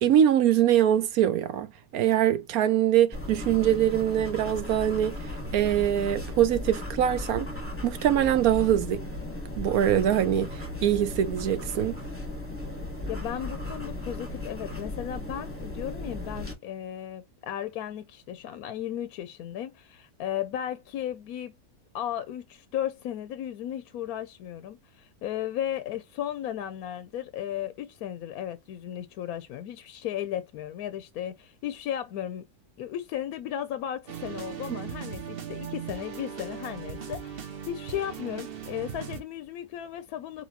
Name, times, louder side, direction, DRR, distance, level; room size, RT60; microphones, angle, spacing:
voice 1, 0.0-1.7 1.9-5.2 5.5-7.5 7.8-9.0 9.6-12.0 34.7-34.8, right 10 dB, 70° right, 1.1 m, -23 dB
sound 1, 3.1-16.5, left 2 dB, 10° left, 1.0 m, -36 dB
voice 2, 13.1-21.5 21.9-32.4 32.8-40.5, left 11 dB, 70° left, 1.0 m, -35 dB
sound 2, 34.1-39.2, right 8 dB, 45° right, 1.0 m, -38 dB
4.5 x 4.1 x 2.8 m
omnidirectional pair, 1.7 m